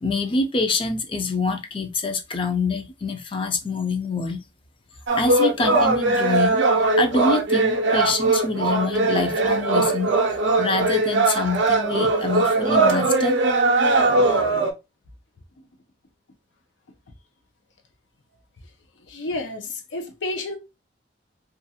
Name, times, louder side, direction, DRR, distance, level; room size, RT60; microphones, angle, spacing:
voice 1, 0.0-4.4 5.2-13.4, left 3 dB, 30° left, 0.4 m, -26 dB
sound 1, 5.1-14.7, right 3 dB, 75° right, 0.5 m, -20 dB
voice 2, 19.1-20.6, left 2 dB, 75° left, 0.6 m, -30 dB
2.5 x 2.3 x 2.7 m
head